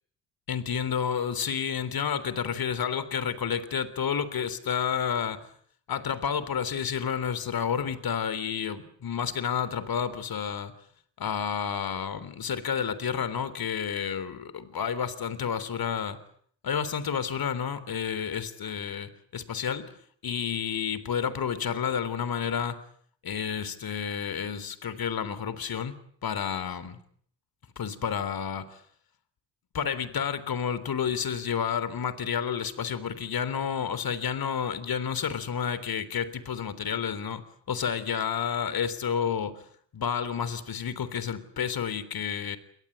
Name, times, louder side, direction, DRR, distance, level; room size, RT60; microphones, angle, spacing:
voice 1, 0.5-5.5 5.9-10.7 11.2-16.2 16.6-19.9 20.2-22.8 23.2-27.0 27.8-28.8 29.7-37.4 37.7-39.6 39.9-42.6, left 7 dB, 45° left, 15 dB, 3.5 m, -30 dB
28.0 x 24.0 x 8.2 m, 0.62 s
hypercardioid pair, 45°, 49 cm